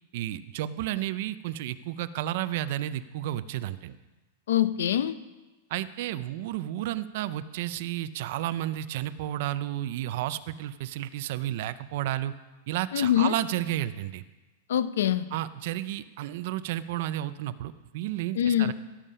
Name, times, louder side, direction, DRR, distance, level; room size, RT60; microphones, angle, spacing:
voice 1, 0.1-4.0 5.7-12.3 12.7-14.2 15.3-18.7, right 13 dB, 45° right, 13 dB, 0.4 m, -32 dB
voice 2, 4.5-5.2 12.9-13.3 14.7-15.2 18.4-18.7, left 11 dB, 90° left, 14 dB, 0.6 m, -24 dB
16.0 x 7.4 x 5.5 m, 1.2 s
supercardioid pair, 180°, 0 cm